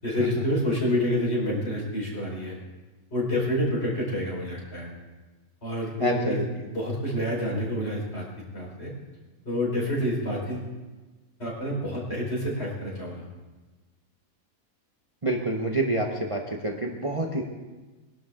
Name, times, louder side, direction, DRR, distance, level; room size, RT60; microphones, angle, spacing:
voice 1, 0.0-2.6 3.1-4.9 5.6-6.4 6.7-8.2 8.5-8.9 9.4-10.7 11.4-13.2, left 1 dB, 45° left, -5 dB, 5.2 m, -28 dB
voice 2, 6.0-6.4 15.2-17.4, right 2 dB, 25° right, 1 dB, 1.0 m, -27 dB
22.0 x 11.5 x 3.8 m, 1.2 s
omnidirectional pair, 1.5 m